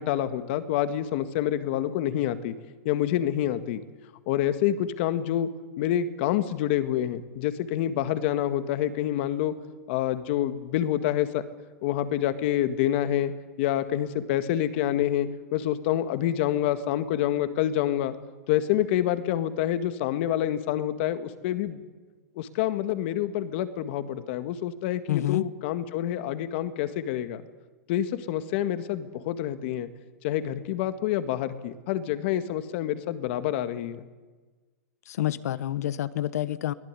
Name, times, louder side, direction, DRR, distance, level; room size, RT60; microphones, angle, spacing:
voice 1, 0.0-2.5 2.9-3.8 4.3-5.5 5.8-9.5 9.9-11.4 11.8-13.3 13.6-18.2 18.5-21.8 22.4-27.4 27.9-29.9 30.2-34.1, left 11 dB, 45° left, 11 dB, 1.8 m, -27 dB
voice 2, 25.1-25.4 35.1-36.7, left 13 dB, 70° left, 17 dB, 1.2 m, -28 dB
23.5 x 17.5 x 9.9 m, 1.3 s
supercardioid pair, 165°, 9 cm